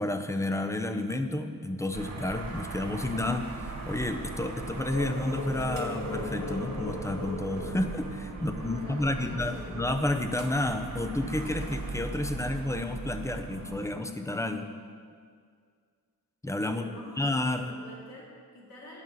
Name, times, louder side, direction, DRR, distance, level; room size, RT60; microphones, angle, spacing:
voice 1, 0.0-14.7 16.4-16.9 17.2-17.8, left 1 dB, 10° left, 7 dB, 0.6 m, -31 dB
sound 1, 1.9-13.9, right 3 dB, 50° right, 1.6 m, -38 dB
sound 2, 4.9-8.6, left 4 dB, 50° left, 2.2 m, -38 dB
voice 2, 8.4-9.8 16.7-17.2 17.6-19.0, left 1 dB, 90° left, -5 dB, 2.9 m, -47 dB
9.8 x 5.5 x 7.6 m, 2.1 s
wide cardioid pair, 110°, 35 cm